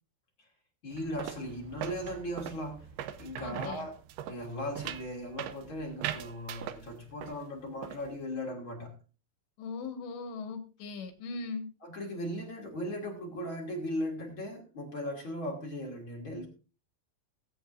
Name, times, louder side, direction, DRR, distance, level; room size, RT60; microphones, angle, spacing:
voice 1, 0.8-2.9 3.2-3.9 4.3-9.0 11.8-16.5, equal, 40° left, -1 dB, 2.2 m, -38 dB
sound 1, 0.9-7.4 7.7-8.2, right 11 dB, 80° right, 2.4 m, -41 dB
voice 2, 3.4-3.9 9.6-11.7, left 4 dB, 80° left, 5 dB, 3.9 m, -39 dB
19.5 x 8.5 x 2.5 m, 0.34 s
omnidirectional pair, 4.9 m